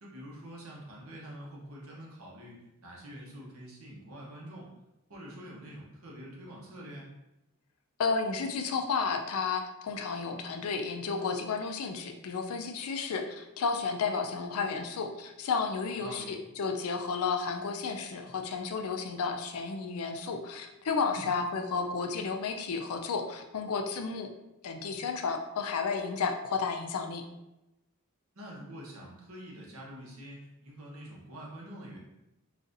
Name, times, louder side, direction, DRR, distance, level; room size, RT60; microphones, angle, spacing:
voice 1, 0.0-4.7 5.1-7.1 15.9-16.3 21.1-21.3 28.3-32.0, equal, 65° right, -3 dB, 0.9 m, -46 dB
voice 2, 8.0-24.3 24.6-27.2, left 5 dB, 75° left, 5 dB, 0.4 m, -32 dB
3.9 x 2.4 x 2.5 m, 0.93 s
head